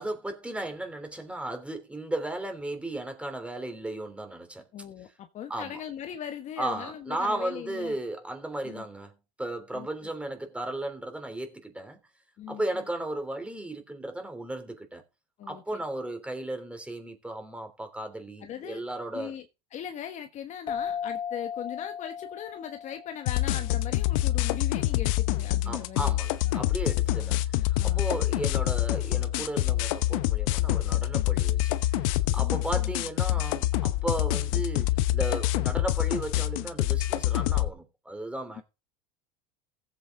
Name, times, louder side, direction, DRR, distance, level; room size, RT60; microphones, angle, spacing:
voice 1, 0.0-4.6 5.5-5.8 6.6-12.0 12.5-15.0 15.5-19.3 25.6-38.6, right 1 dB, 5° right, 3.3 m, -35 dB
voice 2, 4.7-8.0 8.6-8.9 9.7-10.1 12.4-12.8 15.4-15.8 18.4-18.8 19.1-19.5 19.7-26.1 26.4-26.5 27.1-27.3 27.8-28.3 32.4-32.9 33.3-33.4 38.5-38.6, left 9 dB, 40° left, 1.3 m, -40 dB
sound 1, 20.7-24.0, left 8 dB, 25° left, 0.6 m, -36 dB
sound 2, 23.3-37.7, left 15 dB, 70° left, 0.9 m, -26 dB
15.5 x 8.4 x 4.0 m
supercardioid pair, 105°, 18 cm